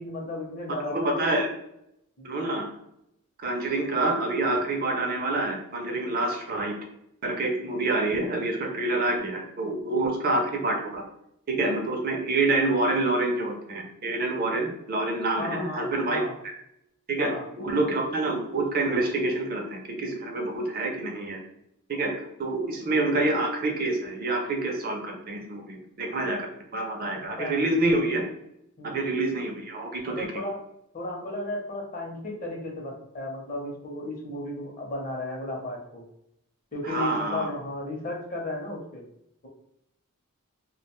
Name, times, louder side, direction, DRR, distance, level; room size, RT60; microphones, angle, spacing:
voice 1, 0.0-1.4 2.2-2.3 15.4-16.3 17.2-17.5 22.6-22.8 27.4-27.6 28.8-29.2 30.0-30.6 30.9-36.0 36.7-39.0, left 1 dB, 40° left, 0 dB, 0.6 m, -34 dB
voice 2, 0.7-1.5 2.2-2.7 3.4-6.7 7.2-11.0 11.5-16.5 17.1-21.4 21.9-22.1 22.4-26.5 26.7-28.2 28.8-30.4 36.8-37.5, right 2 dB, 40° right, 2 dB, 0.5 m, -27 dB
2.4 x 2.2 x 2.9 m, 0.79 s
head